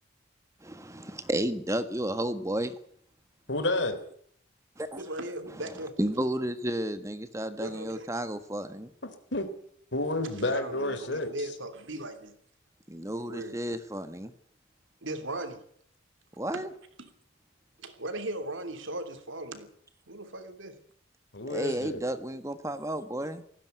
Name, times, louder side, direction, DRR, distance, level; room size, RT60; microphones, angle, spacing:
voice 1, 0.6-2.7 4.8-5.0 6.0-8.9 12.9-14.3 16.4-16.7 21.5-23.4, right 1 dB, 15° right, 10 dB, 1.5 m, -32 dB
voice 2, 3.5-4.0 9.0-9.5 9.9-11.3 21.3-22.0, left 2 dB, 60° left, 10 dB, 3.5 m, -30 dB
voice 3, 5.0-5.9 7.6-8.1 10.3-12.3 13.3-13.6 15.0-15.6 16.5-16.6 17.0-17.1 17.8-19.7 20.1-20.8, right 1 dB, 75° right, 9 dB, 3.1 m, -38 dB
19.0 x 16.0 x 9.4 m, 0.64 s
head